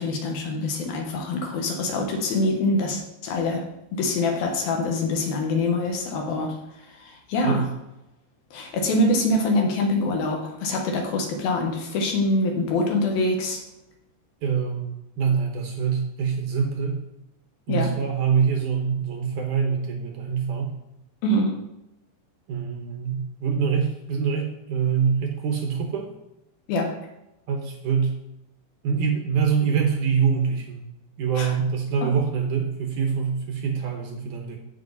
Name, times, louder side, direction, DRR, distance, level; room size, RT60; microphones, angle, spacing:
voice 1, 0.0-3.6 3.9-6.6 7.0-7.6 8.5-13.6 17.7-17.9 21.2-21.5 26.7-26.9 31.4-31.5 32.0-32.1, left 2 dB, 65° left, 2 dB, 2.8 m, -24 dB
voice 2, 14.4-17.0 17.7-20.7 22.5-26.1 27.5-28.1 28.8-30.8 31.2-34.6, right 6 dB, 70° right, 2 dB, 1.9 m, -25 dB
15.0 x 5.5 x 4.0 m, 0.91 s
omnidirectional pair, 4.9 m